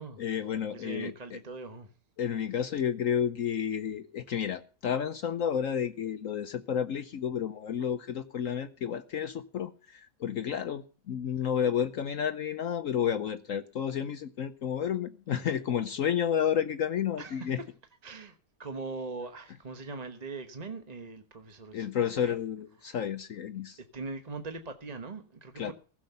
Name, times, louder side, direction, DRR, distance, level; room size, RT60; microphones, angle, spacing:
voice 1, 0.0-1.4 2.2-17.6 21.7-23.8 25.6-25.7, left 8 dB, 60° left, 1.1 m, -31 dB
voice 2, 0.7-1.9 17.2-17.5 18.0-21.9 22.2-22.4 22.8-22.9 23.8-25.7, right 3 dB, 30° right, 1.0 m, -41 dB
16.0 x 7.4 x 6.8 m
omnidirectional pair, 1.7 m